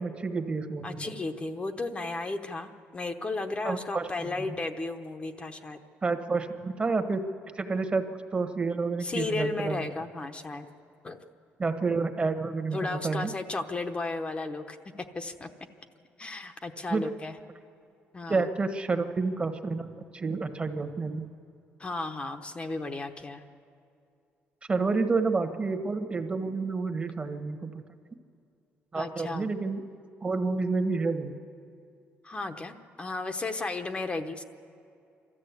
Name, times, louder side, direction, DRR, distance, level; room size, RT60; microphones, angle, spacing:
voice 1, 0.0-1.1 3.6-4.1 6.0-7.2 7.6-8.1 8.3-9.9 11.6-13.3 16.9-17.1 18.3-19.9 20.1-21.3 24.7-27.8 28.9-29.8 30.2-31.3, right 4 dB, 25° right, 8 dB, 1.3 m, -29 dB
voice 2, 0.8-5.8 9.0-10.7 11.0-11.2 12.7-14.8 15.1-15.5 16.2-17.3 18.1-18.5 21.8-23.4 28.9-29.5 32.2-34.4, left 3 dB, 25° left, 7 dB, 0.9 m, -34 dB
25.0 x 13.5 x 8.3 m, 2.5 s
cardioid pair, 110°, 4 cm